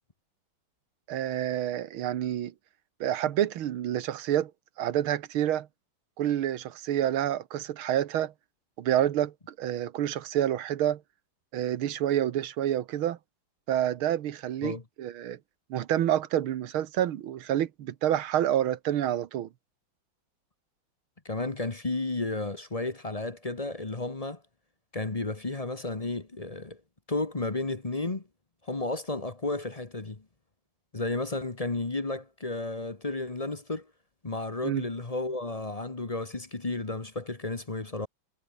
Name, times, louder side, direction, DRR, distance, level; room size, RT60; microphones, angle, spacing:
voice 1, 1.1-2.5 3.0-4.5 4.8-5.7 6.2-8.3 8.8-11.0 11.5-13.2 13.7-15.4 15.7-19.5 34.6-34.8, right 11 dB, 90° right, 2.0 m, -28 dB
voice 2, 21.2-24.4 24.9-26.8 27.1-28.2 28.6-30.2 30.9-33.9 34.2-38.1, left 2 dB, 20° left, 1.1 m, -32 dB
omnidirectional pair, 2.2 m